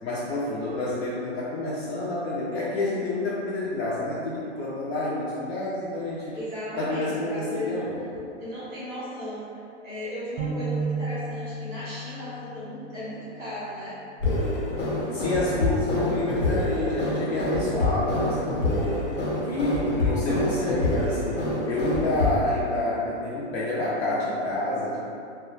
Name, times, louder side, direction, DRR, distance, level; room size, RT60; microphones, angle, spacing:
voice 1, 0.0-6.4 6.8-8.0 15.1-19.0 19.4-25.0, left 2 dB, 60° left, -7 dB, 0.5 m, -28 dB
voice 2, 6.3-7.9 8.4-14.0, equal, 5° left, -17 dB, 0.5 m, -36 dB
sound 1, 10.4-13.9, right 3 dB, 50° right, 0.6 m, -33 dB
sound 2, 14.2-22.4, left 2 dB, 80° left, 1.0 m, -26 dB
2.3 x 2.2 x 3.0 m, 2.5 s
hypercardioid pair, 165°, 36 cm